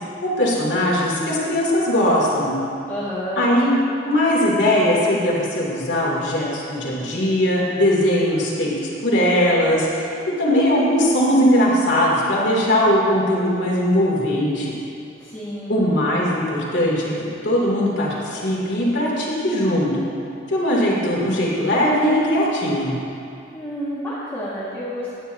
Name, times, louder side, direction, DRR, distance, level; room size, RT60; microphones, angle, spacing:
voice 1, 0.2-2.5 3.4-3.7 4.0-8.7 9.0-10.1 10.4-14.7 15.7-17.1 17.4-19.9 20.5-23.0, equal, 70° left, -5 dB, 2.8 m, -19 dB
voice 2, 2.9-3.4 15.2-15.8 23.5-25.1, equal, 15° left, -11 dB, 1.8 m, -30 dB
17.0 x 10.0 x 2.8 m, 2.6 s
head